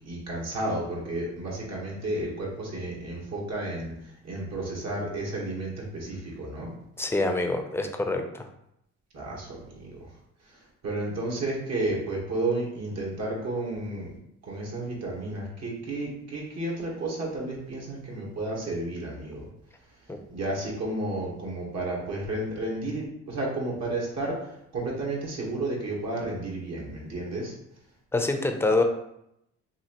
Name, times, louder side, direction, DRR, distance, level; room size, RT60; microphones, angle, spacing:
voice 1, 0.0-6.7 9.1-10.1 10.4-14.1 14.4-19.5 20.3-27.5, right 2 dB, 60° right, -3 dB, 1.6 m, -32 dB
voice 2, 7.0-8.5 20.1-20.2 28.1-28.8, left 2 dB, 10° left, 5 dB, 0.6 m, -26 dB
5.9 x 2.7 x 3.0 m, 0.79 s
cardioid pair, 90°, 30 cm